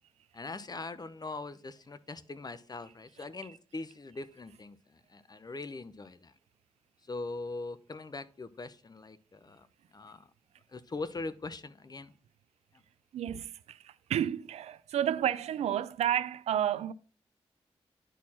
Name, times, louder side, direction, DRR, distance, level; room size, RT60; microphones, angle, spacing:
voice 1, 0.3-6.3 7.1-9.7 9.9-10.3 10.7-12.1, left 3 dB, 40° left, 0.7 m, -41 dB
voice 2, 13.1-16.9, right 10 dB, 85° right, 0.4 m, -31 dB
10.0 x 4.4 x 4.2 m
supercardioid pair, 45°, 11 cm